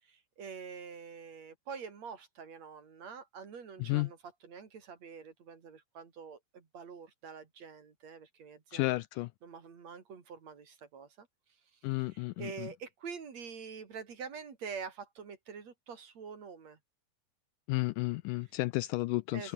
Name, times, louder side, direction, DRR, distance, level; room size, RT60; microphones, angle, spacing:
voice 1, 0.0-9.0 9.4-11.3 11.7-16.8 18.4-18.5 19.3-19.5, right 6 dB, 50° right, 3.9 m, -46 dB
voice 2, 8.7-9.3 11.8-12.7 17.7-19.5, left 20 dB, 85° left, 1.8 m, -32 dB
omnidirectional pair, 4.2 m